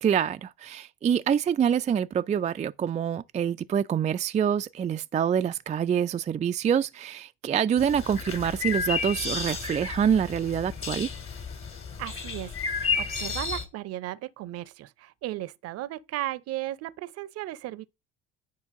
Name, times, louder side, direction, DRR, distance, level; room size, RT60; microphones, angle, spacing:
voice 1, 0.0-11.1, right 8 dB, 25° right, 0.4 m, -26 dB
sound 1, 7.8-13.7, left 5 dB, 45° left, 2.8 m, -32 dB
voice 2, 12.0-17.8, right 15 dB, 55° right, 0.7 m, -36 dB
9.4 x 4.4 x 3.7 m
hypercardioid pair, 60°, 29 cm